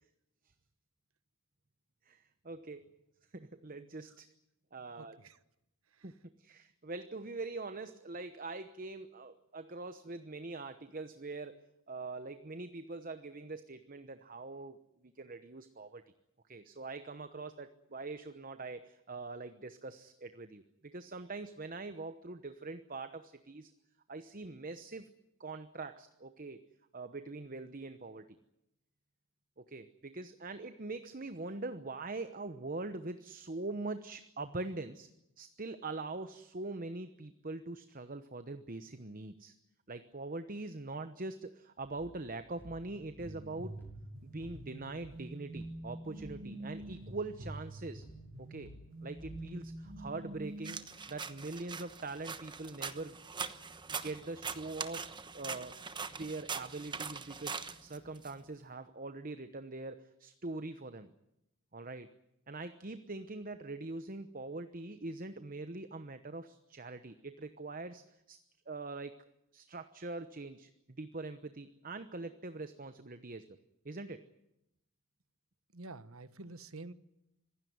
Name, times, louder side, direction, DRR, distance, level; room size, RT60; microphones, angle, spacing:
voice 1, 2.1-2.8 3.3-4.3 4.7-5.2 6.0-11.6 11.9-14.8 15.0-16.0 16.5-23.7 24.1-25.1 25.4-26.6 26.9-28.4 29.6-35.1 35.4-39.5 39.9-43.7 44.2-48.1 48.4-48.7 49.0-50.8 51.1-53.2 53.9-55.7 56.1-61.1 61.7-62.1 62.5-68.4 68.7-69.1 69.5-73.6 73.8-74.2, right 3 dB, 40° right, 10 dB, 1.0 m, -43 dB
voice 2, 5.0-5.4 5.9-6.1 75.7-76.9, right 2 dB, 75° right, 13 dB, 1.3 m, -49 dB
sound 1, 41.8-50.3, left 1 dB, 10° left, 6.1 m, -56 dB
sound 2, 43.2-50.8, right 1 dB, 60° right, 3.2 m, -46 dB
sound 3, 50.6-58.3, right 5 dB, 20° right, 1.1 m, -42 dB
26.0 x 16.5 x 9.5 m, 0.87 s
head